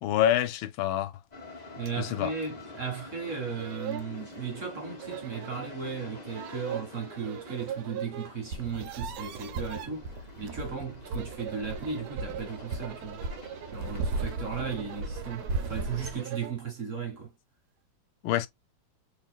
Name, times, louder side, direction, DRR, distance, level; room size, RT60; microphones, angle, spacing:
voice 1, 0.0-1.1 2.0-2.3 18.2-18.5, left 11 dB, 85° left, 1.4 m, -26 dB
sound 1, 1.3-16.3, left 2 dB, 25° left, 1.0 m, -48 dB
voice 2, 1.7-13.2 13.7-17.3, right 5 dB, 45° right, 1.3 m, -36 dB
sound 2, 1.9-2.0 2.4-2.5 3.2-3.3 3.5-4.1 5.0-5.7 6.3-8.3 8.6-9.9 10.9-16.6, right 10 dB, 85° right, 1.4 m, -41 dB
sound 3, 8.5-16.2, right 3 dB, 65° right, 1.1 m, -36 dB
3.9 x 3.4 x 2.3 m
omnidirectional pair, 2.2 m